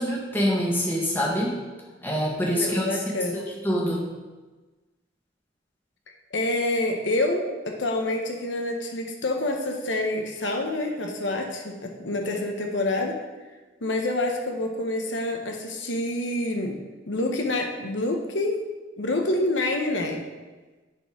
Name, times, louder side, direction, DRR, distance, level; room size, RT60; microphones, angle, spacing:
voice 1, 0.0-1.5 2.0-2.9 3.3-4.1, equal, 10° left, -4 dB, 1.6 m, -25 dB
voice 2, 2.5-3.5 6.3-13.1 13.8-16.7 17.1-18.6 19.0-20.2, left 2 dB, 75° left, 3 dB, 0.9 m, -27 dB
10.5 x 4.3 x 4.7 m, 1.2 s
head